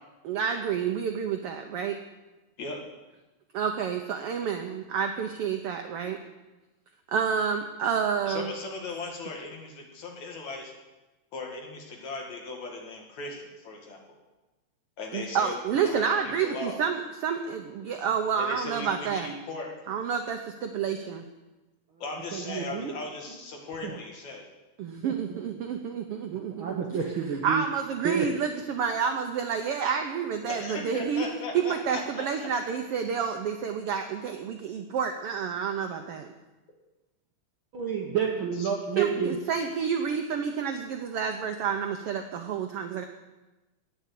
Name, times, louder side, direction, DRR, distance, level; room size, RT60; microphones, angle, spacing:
voice 1, 0.2-2.0 3.5-6.2 7.1-8.5 15.1-19.3 19.9-21.2 24.8-26.8 27.4-31.3 31.5-36.3 39.0-43.0, right 7 dB, 85° right, 5 dB, 1.2 m, -29 dB
voice 2, 8.3-10.7 11.3-14.0 15.0-16.8 18.4-19.7 22.0-24.4 30.5-32.5 38.6-38.7, left 3 dB, 65° left, 0 dB, 3.3 m, -38 dB
voice 3, 22.3-22.9 23.8-23.9 25.0-25.4 26.5-27.6 28.0-28.3 37.7-39.4, right 7 dB, 60° right, 1 dB, 1.4 m, -29 dB
10.5 x 9.4 x 8.3 m, 1.1 s
omnidirectional pair, 3.6 m